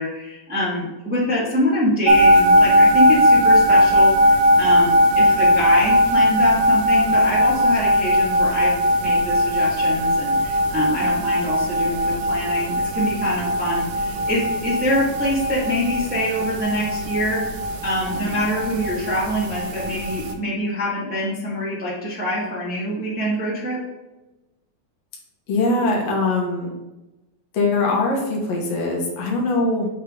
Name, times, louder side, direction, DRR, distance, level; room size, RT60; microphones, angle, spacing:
voice 1, 0.0-8.7 9.0-17.4 17.8-23.8, left 1 dB, 15° right, -6 dB, 0.3 m, -25 dB
sound 1, 2.1-20.3, equal, 90° right, 2.5 m, -19 dB
voice 2, 25.5-26.7 27.5-29.9, left 2 dB, 60° left, -1 dB, 2.2 m, -22 dB
7.2 x 3.7 x 3.8 m, 1.0 s
omnidirectional pair, 3.8 m